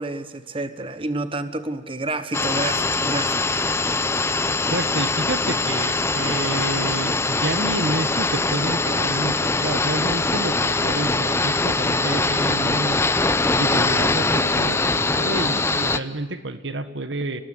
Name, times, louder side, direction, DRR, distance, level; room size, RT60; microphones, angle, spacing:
voice 1, 0.0-3.5, right 2 dB, 30° right, 11 dB, 1.2 m, -29 dB
sound 1, 2.3-16.0, left 3 dB, 15° left, 0.8 m, -22 dB
voice 2, 4.6-13.0 13.6-17.4, right 2 dB, 70° right, 10 dB, 1.7 m, -29 dB
30.0 x 19.5 x 9.8 m, 1.2 s
head